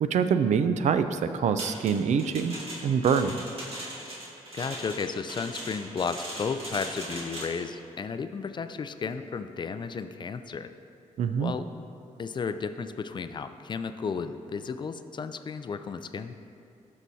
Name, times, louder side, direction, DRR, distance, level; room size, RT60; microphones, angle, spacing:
voice 1, 0.0-2.6 2.8-3.4 11.2-11.5, right 6 dB, 65° right, 10 dB, 0.4 m, -25 dB
sound 1, 1.6-7.6, right 1 dB, 50° right, 2.0 m, -40 dB
voice 2, 4.5-10.7 11.4-11.7 12.2-16.3, left 5 dB, 35° left, 10 dB, 0.4 m, -33 dB
13.5 x 5.7 x 2.7 m, 2.6 s
cardioid pair, 85°, 13 cm